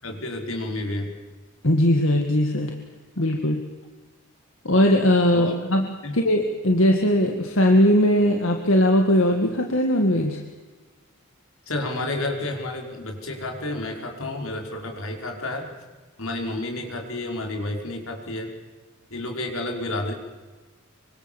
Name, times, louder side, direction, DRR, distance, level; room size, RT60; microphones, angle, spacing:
voice 1, 0.0-1.1 5.3-5.5 6.0-6.1 11.7-15.7 16.2-18.5 19.1-20.1, left 2 dB, 85° left, 2 dB, 5.2 m, -30 dB
voice 2, 1.6-2.7 3.2-3.6 4.6-10.4, left 1 dB, 65° left, 3 dB, 2.0 m, -20 dB
25.0 x 25.0 x 7.3 m, 1.3 s
head